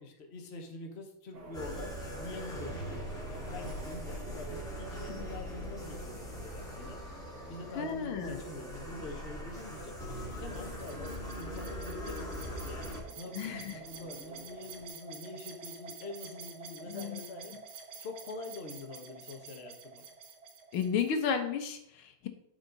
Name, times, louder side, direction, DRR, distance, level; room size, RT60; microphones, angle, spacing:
voice 1, 0.0-7.0 7.5-10.0 10.4-17.5 18.0-20.0, left 2 dB, 35° left, 3 dB, 1.4 m, -45 dB
sound 1, 1.3-14.9, right 4 dB, 45° right, 1.3 m, -50 dB
sound 2, 1.5-13.0, equal, ahead, 2.5 m, -41 dB
voice 2, 7.8-8.4 13.4-13.8 16.9-17.2 20.7-22.3, left 7 dB, 85° left, 7 dB, 1.8 m, -33 dB
sound 3, 10.3-21.3, right 5 dB, 80° right, 2.1 m, -49 dB
13.0 x 5.1 x 4.0 m, 0.72 s
omnidirectional pair, 2.2 m